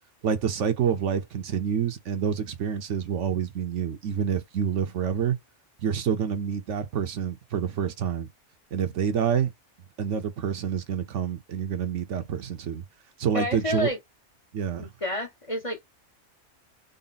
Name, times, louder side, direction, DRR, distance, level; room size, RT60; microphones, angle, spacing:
voice 1, 0.2-5.4 5.8-8.3 8.7-9.5 10.0-12.8 13.2-13.9 14.5-14.9, right 8 dB, 75° right, 1.1 m, -27 dB
voice 2, 13.3-14.0 14.8-15.8, left 1 dB, 35° left, 0.7 m, -29 dB
3.9 x 2.1 x 3.9 m
omnidirectional pair, 1.3 m